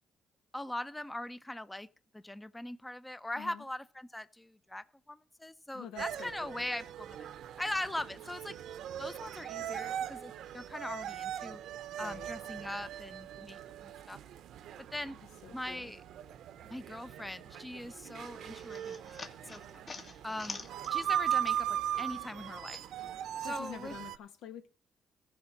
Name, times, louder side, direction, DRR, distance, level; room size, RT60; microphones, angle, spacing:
voice 1, 0.5-1.9 2.1-7.3 7.6-8.6 9.0-11.6 12.0-14.2 14.9-15.2 15.5-16.0 16.6-19.0 19.2-19.6 20.2-22.8 23.4-24.0, left 1 dB, 10° left, 0.6 m, -41 dB
voice 2, 5.7-6.6 12.0-12.3 15.0-16.0 23.4-24.7, left 9 dB, 90° left, 1.4 m, -48 dB
china market, 6.0-24.2, right 10 dB, 80° right, 0.7 m, -39 dB
sound 1, 18.2-21.8 22.1-23.5, left 3 dB, 40° left, 1.6 m, -48 dB
14.5 x 5.1 x 7.2 m
cardioid pair, 90°, 0 cm